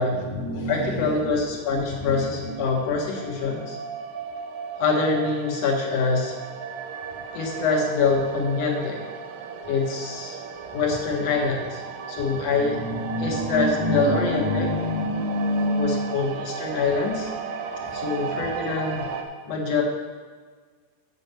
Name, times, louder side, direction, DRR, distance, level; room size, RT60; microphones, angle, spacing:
voice 1, 0.0-1.4 1.9-2.6 6.9-7.4 12.6-16.2 17.8-18.2, left 1 dB, 75° left, -1 dB, 1.5 m, -28 dB
voice 2, 0.7-3.8 4.8-6.4 7.3-9.0 9.7-10.4 10.7-11.8 12.1-12.8 13.2-14.7 15.7-17.3 17.9-19.1 19.5-19.8, left 4 dB, 55° left, -1 dB, 2.0 m, -25 dB
sound 1, 1.2-19.2, right 6 dB, 75° right, 2.2 m, -35 dB
8.4 x 7.0 x 6.8 m, 1.6 s
omnidirectional pair, 4.5 m